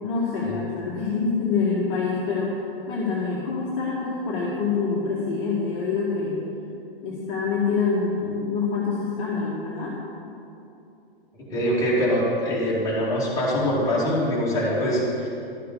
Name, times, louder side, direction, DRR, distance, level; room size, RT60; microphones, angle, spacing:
voice 1, 0.0-6.4 7.0-9.9, left 4 dB, 30° left, -6 dB, 1.8 m, -26 dB
voice 2, 11.5-15.3, equal, 10° left, -7 dB, 3.0 m, -23 dB
12.5 x 6.7 x 6.7 m, 2.7 s
figure-of-eight pair, 115°, 30 cm